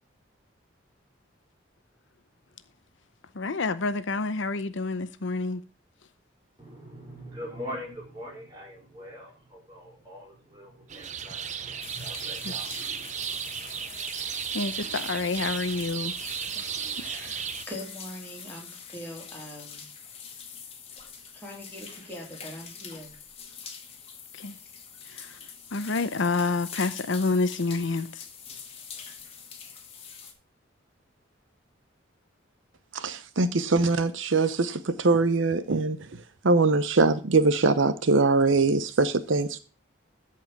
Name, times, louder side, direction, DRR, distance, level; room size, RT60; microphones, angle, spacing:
voice 1, 3.3-5.6 12.4-12.5 14.5-16.1 16.6-16.7 24.3-24.6 25.1-25.4 25.7-28.2, left 3 dB, 70° left, 0.7 m, -28 dB
voice 2, 6.6-13.8, equal, 20° right, 5.2 m, -43 dB
sound 1, 10.9-17.6, right 8 dB, 35° right, 0.7 m, -34 dB
sound 2, 11.8-30.3, left 6 dB, 30° left, 1.8 m, -44 dB
voice 3, 17.0-19.8 21.3-23.1, left 1 dB, 10° left, 3.5 m, -42 dB
voice 4, 32.9-36.0 36.4-39.6, right 3 dB, 75° right, 0.8 m, -22 dB
13.5 x 4.7 x 5.9 m
head